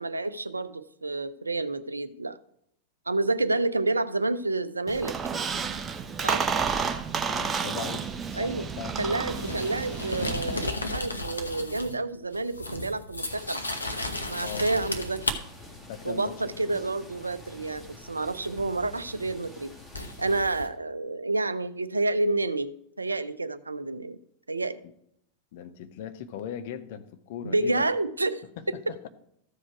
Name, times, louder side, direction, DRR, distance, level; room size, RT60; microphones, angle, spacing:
voice 1, 0.0-2.4 3.1-5.2 6.2-6.5 8.3-8.7 9.0-13.6 14.3-15.3 16.0-19.7 20.2-24.2 24.5-24.8 27.4-28.4, right 2 dB, 80° right, 0.4 m, -29 dB
Squeak, 4.9-10.7, right 6 dB, 20° right, 0.7 m, -31 dB
voice 2, 7.1-9.6 14.4-14.7 15.9-16.9 25.5-27.8 28.6-29.1, left 9 dB, 50° left, 0.7 m, -40 dB
sound 1, 9.0-12.0 12.3-15.4 18.6-18.7 19.9-20.7, left 2 dB, 80° left, 0.8 m, -34 dB
sound 2, 13.3-20.4, left 2 dB, 10° left, 1.6 m, -47 dB
14.0 x 5.0 x 4.6 m
figure-of-eight pair, 90°, 0 cm